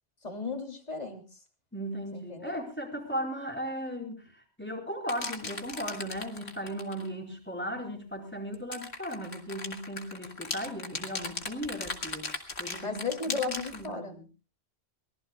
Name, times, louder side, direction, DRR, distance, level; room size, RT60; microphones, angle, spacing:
voice 1, 0.2-1.2 2.1-2.6 12.8-14.2, left 4 dB, 40° left, 3 dB, 2.9 m, -35 dB
voice 2, 1.7-12.3 12.6-13.0 13.5-14.2, equal, 10° left, 0 dB, 4.6 m, -37 dB
sound 1, 5.1-7.1 8.5-13.9, left 3 dB, 75° left, 2.4 m, -37 dB
24.0 x 19.0 x 2.3 m, 0.34 s
omnidirectional pair, 1.1 m